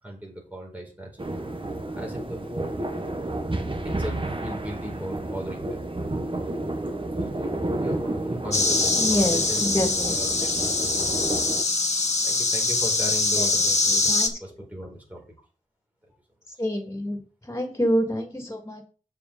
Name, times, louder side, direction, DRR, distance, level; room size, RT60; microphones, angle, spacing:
voice 1, 0.0-1.3 1.9-2.8 3.8-5.9 7.2-11.2 12.2-15.2 16.0-16.1, equal, 10° right, -1 dB, 4.2 m, -38 dB
sound 1, 1.2-11.6, right 2 dB, 40° right, 1.4 m, -31 dB
sound 2, 8.5-14.3, left 3 dB, 55° left, 1.3 m, -23 dB
voice 2, 9.0-10.2 13.4-14.4 16.6-18.8, equal, 20° left, 3 dB, 2.9 m, -27 dB
7.0 x 5.0 x 7.1 m, 0.37 s
wide cardioid pair, 65°, 14 cm